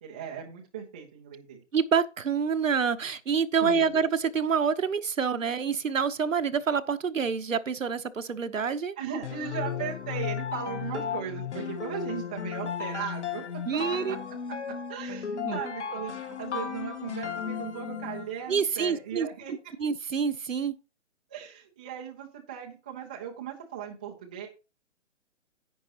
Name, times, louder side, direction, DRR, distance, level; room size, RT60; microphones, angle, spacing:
voice 1, 0.0-1.6 3.6-4.0 9.0-13.6 13.9-14.2 14.7-19.5 21.3-24.5, right 8 dB, 5° right, 0.4 m, -38 dB
voice 2, 1.7-9.0 13.7-14.2 15.4-15.6 18.5-19.3 19.8-20.7, right 6 dB, 80° right, 1.0 m, -27 dB
sound 1, 9.2-18.4, left 7 dB, 65° left, 1.4 m, -35 dB
10.5 x 8.8 x 2.9 m
figure-of-eight pair, 130°, 38 cm